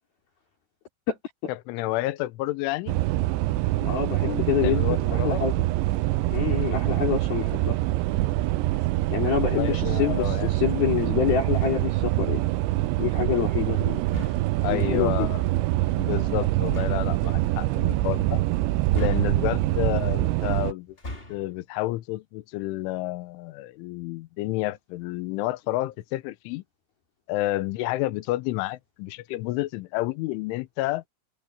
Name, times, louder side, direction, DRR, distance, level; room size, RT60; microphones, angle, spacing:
voice 1, 1.5-3.0 4.3-5.4 9.4-10.6 14.6-15.5 16.0-18.4 18.9-21.0 21.3-26.6 27.3-31.0, left 17 dB, 75° left, 3.2 m, -30 dB
sound 1, 2.9-20.7, right 17 dB, 90° right, 2.6 m, -25 dB
voice 2, 3.8-5.5 6.3-7.8 9.1-12.5 13.0-14.0 14.7-15.3, left 9 dB, 50° left, 5.0 m, -27 dB
sound 2, 11.5-12.1 14.1-14.7 16.6-17.2 18.9-19.7 20.9-21.6, left 1 dB, 15° left, 1.9 m, -39 dB
omnidirectional pair, 5.9 m